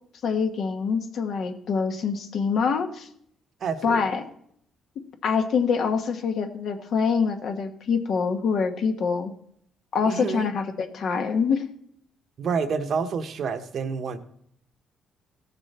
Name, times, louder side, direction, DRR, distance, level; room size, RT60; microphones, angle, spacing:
voice 1, 0.2-3.1 3.8-4.2 5.0-9.3 9.9-11.7, left 5 dB, 65° left, 6 dB, 1.2 m, -25 dB
voice 2, 3.6-4.0 10.1-10.5 12.4-14.2, right 5 dB, 60° right, 9 dB, 0.9 m, -28 dB
16.5 x 6.8 x 4.2 m, 0.68 s
cardioid pair, 90°, 0 cm